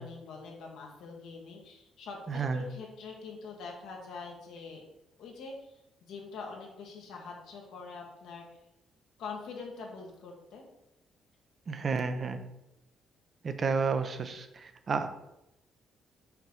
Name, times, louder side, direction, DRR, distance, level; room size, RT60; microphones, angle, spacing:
voice 1, 0.0-4.8 5.2-5.8 6.1-8.6 9.2-10.6, left 4 dB, 85° left, 0 dB, 1.4 m, -44 dB
voice 2, 2.3-2.6 11.7-12.4 13.4-15.1, right 5 dB, 45° right, 8 dB, 0.6 m, -31 dB
5.8 x 3.0 x 5.4 m, 0.86 s
cardioid pair, 90°, 0 cm